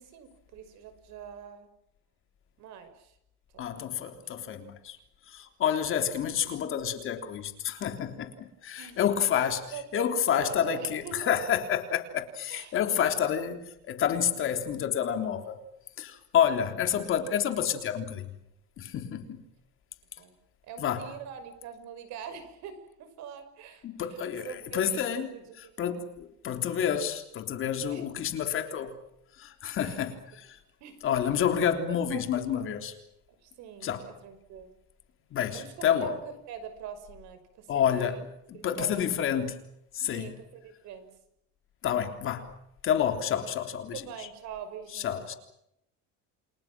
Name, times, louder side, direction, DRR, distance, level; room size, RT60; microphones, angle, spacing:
voice 1, 0.0-1.7 2.6-3.2 3.5-4.1 8.8-9.1 9.7-11.3 12.5-12.8 13.1-13.2 20.2-20.3 20.7-22.7 23.0-23.8 24.4-26.0 27.9-28.0 29.8-30.0 30.8-31.0 31.9-32.2 32.5-32.7 33.4-34.7 35.5-36.2 36.5-38.2 38.5-39.4 40.1-41.1 43.9-45.4, right 8 dB, 55° right, 6.0 m, -44 dB
voice 2, 3.6-5.0 5.3-15.6 16.0-18.3 18.8-19.4 20.8-21.0 23.8-25.3 25.6-29.0 29.3-30.6 31.0-32.9 33.8-34.1 35.3-36.2 37.7-38.3 38.6-39.6 39.9-40.4 41.8-42.5 42.8-44.3 44.9-45.3, left 9 dB, 40° left, 3.5 m, -29 dB
29.5 x 27.0 x 6.2 m
cardioid pair, 170°, 33 cm